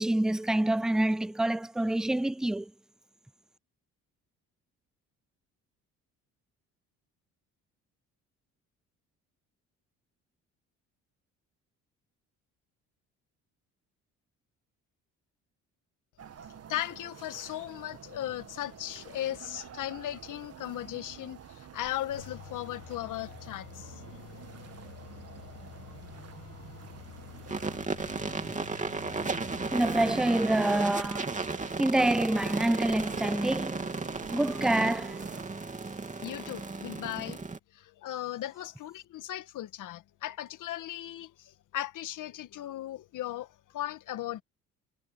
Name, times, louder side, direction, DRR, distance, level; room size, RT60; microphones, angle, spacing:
voice 1, 0.0-2.7 29.7-31.3 31.8-33.8 34.3-35.1, right 1 dB, ahead, 0.4 m, -27 dB
sound 1, 16.2-35.5, right 8 dB, 50° right, 1.8 m, -49 dB
voice 2, 16.7-24.0 36.2-37.4 37.7-44.4, left 13 dB, 70° left, 1.7 m, -37 dB
sound 2, 22.1-30.1, left 17 dB, 85° left, 5.8 m, -49 dB
sound 3, 27.5-37.6, right 3 dB, 25° right, 3.1 m, -34 dB
supercardioid pair, 80°, 32 cm